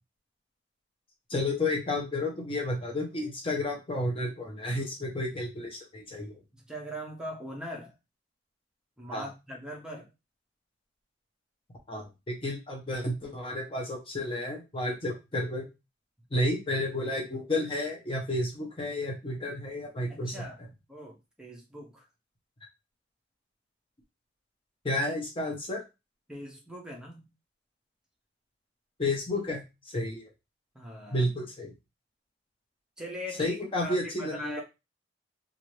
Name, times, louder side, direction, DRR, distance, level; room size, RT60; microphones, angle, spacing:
voice 1, 1.3-6.4 9.1-9.3 11.9-15.7 16.3-20.5 24.8-25.8 29.0-29.6 29.9-30.3 31.1-31.7 33.4-34.6, left 1 dB, 30° left, 1 dB, 0.7 m, -31 dB
voice 2, 6.7-7.9 9.0-10.1 20.2-20.6 20.9-22.0 26.3-27.3 30.7-31.3 33.0-34.6, equal, 5° right, -1 dB, 0.7 m, -40 dB
2.7 x 2.5 x 3.1 m, 0.25 s
head